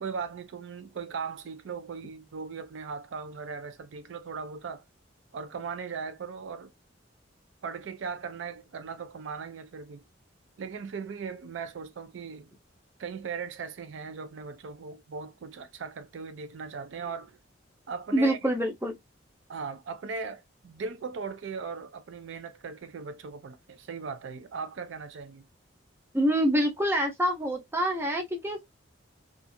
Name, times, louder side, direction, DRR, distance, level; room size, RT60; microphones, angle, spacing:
voice 1, 0.0-4.8 5.3-6.7 7.6-10.0 10.6-12.5 13.0-17.4 17.9-18.4 19.5-25.5, right 5 dB, 70° right, 0.4 m, -38 dB
voice 2, 18.1-19.0 26.1-28.6, equal, 10° right, 0.7 m, -26 dB
2.5 x 2.4 x 2.6 m
head